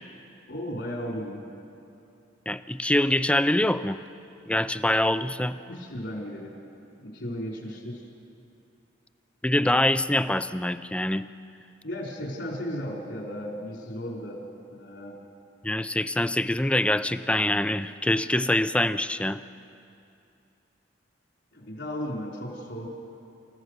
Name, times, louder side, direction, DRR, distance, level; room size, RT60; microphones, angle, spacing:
voice 1, 0.5-1.4 5.6-6.5 7.0-8.0 11.8-14.4 14.7-15.2 21.5-22.9, equal, 70° left, -1 dB, 4.6 m, -35 dB
voice 2, 2.5-4.0 4.5-5.6 9.4-11.3 15.6-19.4, left 1 dB, 5° left, 12 dB, 0.5 m, -24 dB
29.5 x 15.0 x 6.6 m, 2.6 s
head